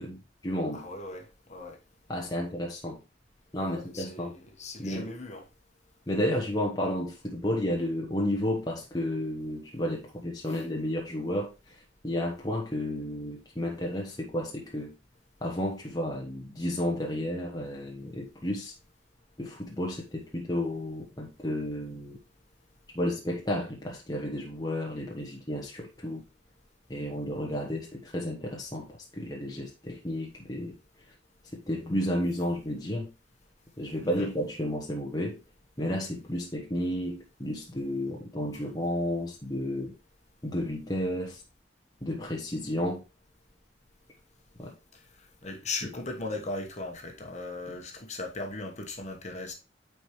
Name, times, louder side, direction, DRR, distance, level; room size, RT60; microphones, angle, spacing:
voice 1, 0.0-0.9 2.1-3.0 3.5-4.3 4.8-5.1 6.1-14.9 15.4-18.7 19.4-22.2 22.9-26.2 26.9-28.9 29.1-30.8 31.5-33.1 33.8-35.4 35.8-39.9 40.4-41.4 42.0-43.0 44.6-44.7, left 1 dB, 20° left, 1.1 m, -32 dB
voice 2, 0.7-1.8 3.6-5.4 10.5-10.6 34.2-34.3 45.4-49.5, left 2 dB, 40° left, 1.3 m, -38 dB
9.1 x 4.6 x 3.2 m
head